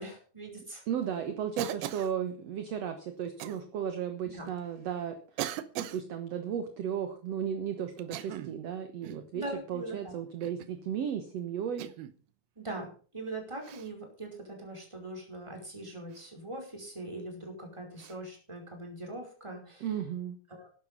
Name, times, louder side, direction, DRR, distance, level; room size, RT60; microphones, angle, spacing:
voice 1, 0.0-0.8 4.3-4.5 9.3-10.1 12.6-19.9 20.5-20.7, right 2 dB, 5° right, 1 dB, 4.8 m, -41 dB
voice 2, 0.9-5.5 5.8-11.9 19.8-20.4, right 8 dB, 60° right, 7 dB, 1.9 m, -35 dB
Cough, 1.6-2.1 3.4-3.6 4.5-4.6 5.4-6.0 8.0-8.6 9.0-9.3 10.4-10.8 11.8-12.2 13.6-13.9 16.1-16.3 18.0-18.2, right 13 dB, 85° right, 2.8 m, -39 dB
12.5 x 11.5 x 5.7 m, 0.41 s
omnidirectional pair, 4.3 m